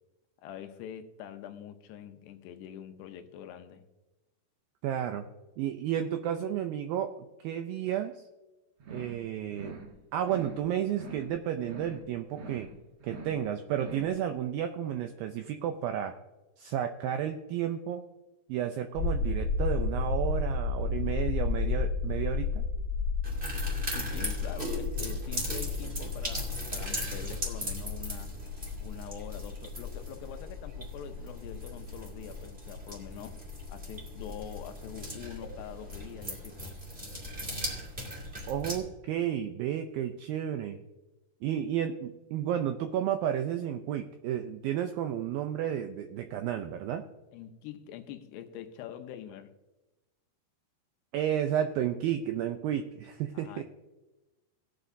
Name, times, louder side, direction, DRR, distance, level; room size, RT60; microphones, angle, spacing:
voice 1, 0.4-3.9 23.8-28.3 28.8-36.7 47.3-49.5 53.3-53.6, left 9 dB, 80° left, 2.8 m, -44 dB
voice 2, 4.8-5.2 5.6-7.1 7.4-8.2 8.9-9.8 10.1-12.7 13.0-16.1 16.6-18.0 18.5-22.6 38.5-40.8 41.4-47.0 51.1-53.6, right 10 dB, 85° right, 2.1 m, -32 dB
sound 1, 8.8-9.2 9.5-9.9 10.2-10.6 10.9-11.3 11.6-12.0 12.3-12.7 13.0-13.4 13.7-14.1, right 3 dB, 60° right, 1.7 m, -44 dB
sound 2, 18.9-35.0 35.3-35.4, left 4 dB, 40° left, 1.7 m, -33 dB
sound 3, 23.2-38.8, equal, 20° right, 1.6 m, -39 dB
17.5 x 10.0 x 2.7 m
omnidirectional pair, 4.9 m